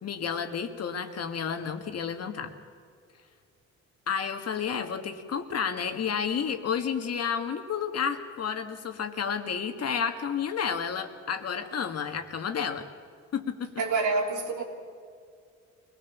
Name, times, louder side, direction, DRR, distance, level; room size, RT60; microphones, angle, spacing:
voice 1, 0.0-2.5 4.1-12.8 13.3-13.7, left 7 dB, 55° left, 6 dB, 1.8 m, -31 dB
voice 2, 13.8-14.6, right 3 dB, 85° right, 1 dB, 3.3 m, -27 dB
23.5 x 18.5 x 7.2 m, 2.2 s
cardioid pair, 90°, 30 cm